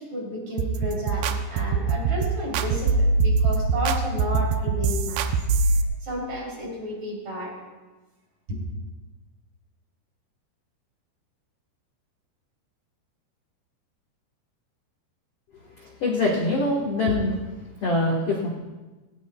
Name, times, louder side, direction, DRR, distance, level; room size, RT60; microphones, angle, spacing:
voice 1, 0.0-5.3 5.7-7.6 8.5-8.7, equal, 45° right, -3 dB, 4.0 m, -32 dB
sound 1, 0.6-5.8, right 4 dB, 80° right, 2.3 m, -23 dB
voice 2, 15.8-17.4 17.8-18.5, left 2 dB, 70° left, -2 dB, 1.4 m, -24 dB
17.5 x 17.5 x 2.3 m, 1.2 s
omnidirectional pair, 4.8 m